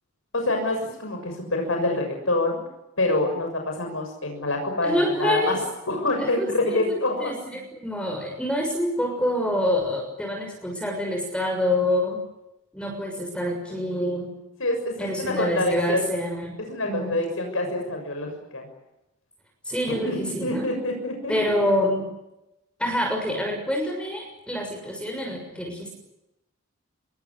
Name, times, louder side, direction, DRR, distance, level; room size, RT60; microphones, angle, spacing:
voice 1, 0.3-2.6 3.0-5.6 5.9-7.3 14.6-16.0 16.7-18.7 19.9-21.3, left 2 dB, 80° left, 3 dB, 6.7 m, -26 dB
voice 2, 4.8-5.6 6.4-12.2 12.7-14.3 15.0-16.5 16.8-17.1 19.6-20.6 21.3-22.1 22.8-25.9, left 1 dB, 5° left, 2 dB, 6.5 m, -26 dB
26.5 x 22.5 x 9.6 m, 0.91 s
head